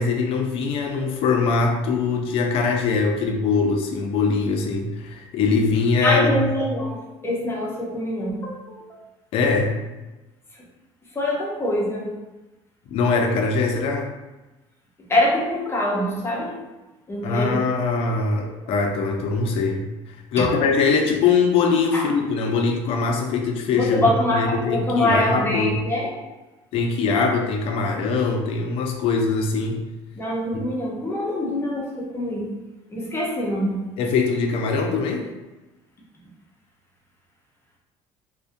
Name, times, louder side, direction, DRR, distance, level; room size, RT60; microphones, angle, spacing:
voice 1, 0.0-6.5 9.3-9.7 12.9-14.1 17.2-25.8 26.7-29.8 30.5-30.7 34.0-35.3, left 4 dB, 60° left, 3 dB, 0.4 m, -22 dB
voice 2, 6.0-9.0 11.1-12.1 15.1-16.6 17.1-17.7 18.4-18.6 21.9-22.1 23.7-26.1 30.2-32.5 32.9-33.8, left 1 dB, 25° left, -3 dB, 0.6 m, -24 dB
2.4 x 2.1 x 2.5 m, 1.1 s
cardioid pair, 110°, 11 cm